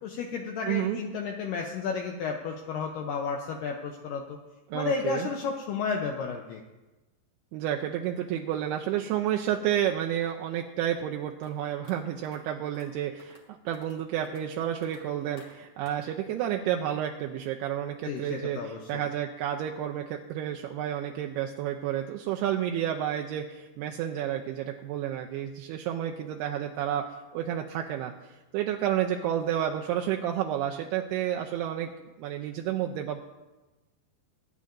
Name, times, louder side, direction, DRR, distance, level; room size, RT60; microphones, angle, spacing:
voice 1, 0.0-4.4 4.7-6.6 18.0-19.0, left 5 dB, 85° left, 2 dB, 1.9 m, -32 dB
voice 2, 0.7-1.0 4.7-5.3 7.5-27.1 27.3-28.1 28.5-31.9 32.2-33.2, right 10 dB, 85° right, 2 dB, 2.5 m, -30 dB
sound 1, 11.4-11.5 11.8-11.9 12.2-12.4 12.7-12.9 13.2-13.4 13.7-14.0 14.2-14.4 14.8-15.0 15.4-15.5 15.8-16.1, left 3 dB, 50° left, 1.5 m, -53 dB
21.5 x 9.5 x 2.6 m, 1.1 s
omnidirectional pair, 4.9 m